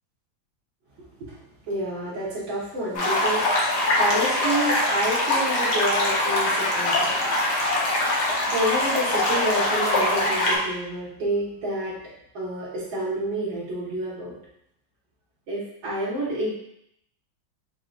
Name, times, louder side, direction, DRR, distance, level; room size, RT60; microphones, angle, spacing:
voice 1, 1.7-7.1 8.4-12.0 12.3-14.3 15.5-16.5, right 1 dB, 75° right, -8 dB, 2.2 m, -29 dB
sound 1, 2.9-10.6, left 1 dB, 65° left, 1.4 m, -23 dB
6.5 x 3.0 x 2.5 m, 0.75 s
omnidirectional pair, 2.1 m